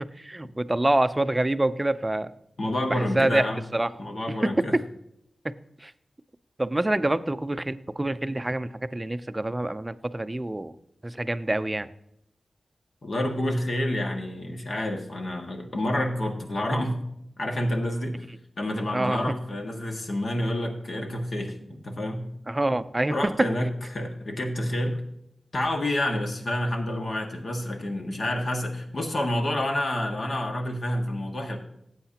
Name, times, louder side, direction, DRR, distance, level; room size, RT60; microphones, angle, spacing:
voice 1, 0.2-2.3 2.9-3.4 3.7-3.9 5.8-5.9 6.6-10.7 11.0-11.9 18.9-19.2 22.5-23.3, right 1 dB, 20° right, 12 dB, 0.5 m, -26 dB
voice 2, 2.6-3.6 4.0-4.8 13.0-17.0 17.4-18.2 18.6-22.3 23.1-25.0 25.5-31.6, left 1 dB, 55° left, 2 dB, 1.8 m, -28 dB
15.5 x 8.2 x 2.9 m, 0.77 s
wide cardioid pair, 90°, 0 cm